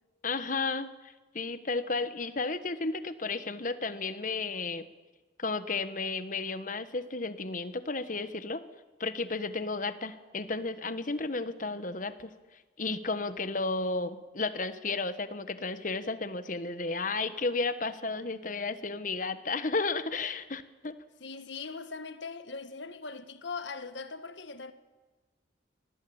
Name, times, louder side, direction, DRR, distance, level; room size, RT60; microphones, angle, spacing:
voice 1, 0.2-4.8 5.4-8.6 9.0-12.3 12.8-21.0, left 3 dB, 40° left, 1.3 m, -33 dB
voice 2, 21.2-24.7, left 4 dB, 65° left, 1.6 m, -40 dB
25.0 x 19.0 x 8.8 m
head